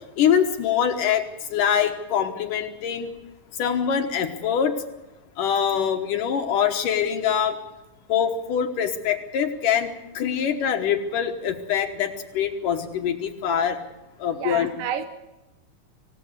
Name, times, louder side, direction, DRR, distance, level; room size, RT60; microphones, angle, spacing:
voice 1, 0.2-1.2 1.5-3.1 3.6-4.8 5.4-7.6 8.1-9.9 10.1-13.8 14.2-14.7, left 8 dB, 75° left, 4 dB, 2.8 m, -24 dB
voice 2, 14.3-15.0, right 9 dB, 80° right, 8 dB, 2.7 m, -30 dB
26.5 x 16.5 x 7.9 m, 1.0 s
omnidirectional pair, 3.9 m